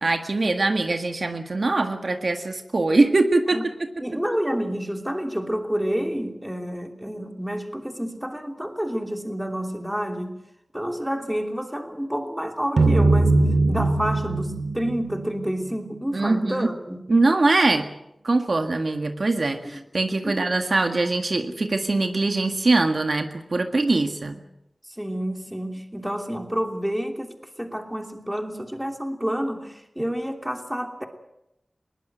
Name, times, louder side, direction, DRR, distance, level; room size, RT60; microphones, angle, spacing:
voice 1, 0.0-3.6 16.1-16.7 17.1-17.9 18.2-24.4, right 2 dB, 65° right, 6 dB, 1.7 m, -22 dB
voice 2, 4.0-10.3 10.7-17.0 19.7-19.8 20.2-20.5 25.0-31.1, equal, 5° right, 4 dB, 3.0 m, -29 dB
sound 1, 12.8-16.0, right 2 dB, 85° right, 2.4 m, -21 dB
21.0 x 18.5 x 7.9 m, 0.85 s
wide cardioid pair, 55°, 0 cm